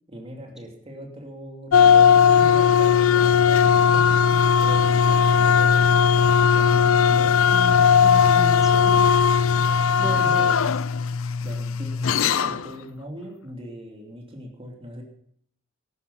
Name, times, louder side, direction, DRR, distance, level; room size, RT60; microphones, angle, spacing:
voice 1, 0.1-4.3 4.6-5.8 6.2-7.4 10.0-10.6 11.4-15.0, equal, 30° right, 1 dB, 3.1 m, -40 dB
sound 1, 1.7-12.7, left 7 dB, 80° left, 0.5 m, -18 dB
voice 2, 7.5-9.1 10.0-10.7, equal, ahead, 3 dB, 1.7 m, -34 dB
14.0 x 12.0 x 5.8 m, 0.65 s
head